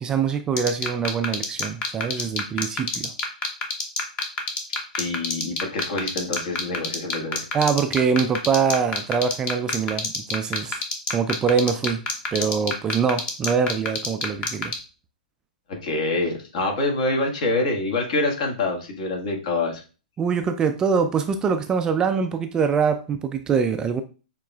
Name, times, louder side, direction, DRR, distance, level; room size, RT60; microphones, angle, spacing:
voice 1, 0.0-3.1 7.5-10.8 11.1-12.0 12.3-14.7 20.2-24.0, right 6 dB, 15° right, 0.3 m, -24 dB
sound 1, 0.6-14.7, left 4 dB, 20° left, 0.9 m, -25 dB
voice 2, 4.9-7.4 9.9-10.0 15.7-19.8, left 2 dB, 50° left, 1.6 m, -26 dB
6.9 x 3.0 x 2.3 m
hypercardioid pair, 130°, 5 cm